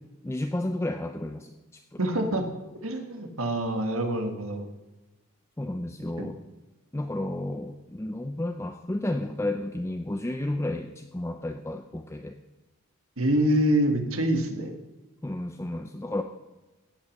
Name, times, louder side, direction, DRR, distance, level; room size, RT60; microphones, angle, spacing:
voice 1, 0.2-2.0 5.6-6.4 6.9-12.4 15.2-16.2, left 1 dB, 10° left, 5 dB, 0.5 m, -32 dB
voice 2, 2.0-2.4 2.8-4.7 6.2-6.3 13.2-14.8, right 1 dB, 85° right, 5 dB, 1.7 m, -26 dB
17.0 x 6.2 x 6.5 m, 1.1 s
head